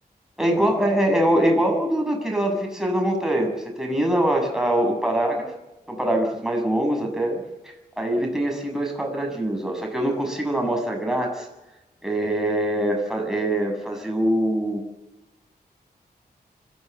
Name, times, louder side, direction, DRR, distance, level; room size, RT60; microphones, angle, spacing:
voice 1, 0.4-5.5 5.9-11.5 12.0-14.8, right 1 dB, 5° right, 1 dB, 7.4 m, -23 dB
25.0 x 17.0 x 8.2 m, 0.96 s
wide cardioid pair, 140°, 16 cm